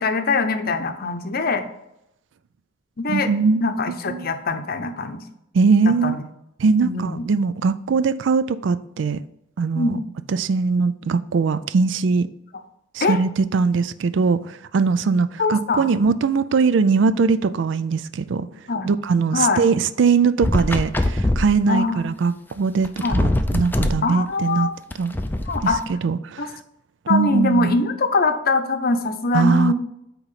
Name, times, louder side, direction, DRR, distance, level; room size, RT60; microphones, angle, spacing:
voice 1, 0.0-1.6 3.0-3.3 3.6-5.2 6.0-6.2 6.8-7.3 9.7-10.1 13.0-13.2 15.4-15.9 18.7-18.9 19.3-19.6 21.7-22.1 23.0-23.2 24.0-24.8 25.5-25.8 26.4-26.5 27.1-29.7, left 3 dB, 55° left, 0.7 m, -22 dB
voice 2, 3.1-3.6 4.1-4.3 5.5-6.2 6.6-9.2 9.6-10.0 10.3-12.3 12.9-18.5 18.8-24.7 25.0-25.2 25.6-26.5 27.1-27.8 29.3-29.7, right 5 dB, 75° right, 0.4 m, -21 dB
sound 1, 20.4-21.5 22.6-22.7 22.8-24.0 24.9-25.8, left 1 dB, 10° left, 0.4 m, -22 dB
8.9 x 3.0 x 5.6 m
head